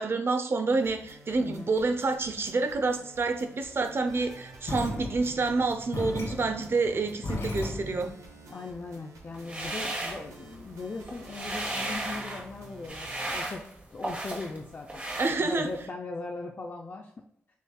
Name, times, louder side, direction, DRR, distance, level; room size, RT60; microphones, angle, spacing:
voice 1, 0.0-8.1 15.2-15.7, right 3 dB, 50° right, 7 dB, 0.7 m, -28 dB
sound 1, 0.7-13.4, right 3 dB, 90° right, 0.9 m, -50 dB
voice 2, 1.4-1.7 8.5-17.1, left 3 dB, 45° left, 1 dB, 0.5 m, -39 dB
sound 2, 4.7-8.2, left 2 dB, 70° left, 1.5 m, -36 dB
sound 3, 9.3-10.7 11.0-12.5 12.8-14.6 14.9-15.8, right 1 dB, 25° right, 1.4 m, -35 dB
6.4 x 3.4 x 2.3 m, 0.71 s
cardioid pair, 55°, 5 cm